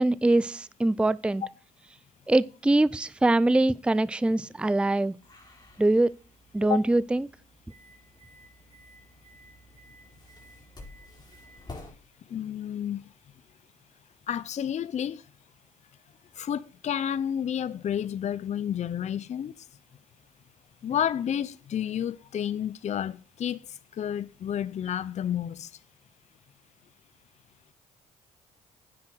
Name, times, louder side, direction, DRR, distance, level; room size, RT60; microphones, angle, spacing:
voice 1, 0.0-1.4 2.3-5.2 5.8-6.1 6.5-7.3, right 2 dB, 5° right, 0.5 m, -23 dB
sound 1, 5.2-11.9, left 1 dB, 25° left, 4.5 m, -50 dB
voice 2, 12.3-13.0 14.3-15.2 16.4-19.5 20.8-23.6 24.0-25.7, left 9 dB, 50° left, 0.6 m, -30 dB
9.5 x 8.5 x 6.4 m
supercardioid pair, 75°, 15 cm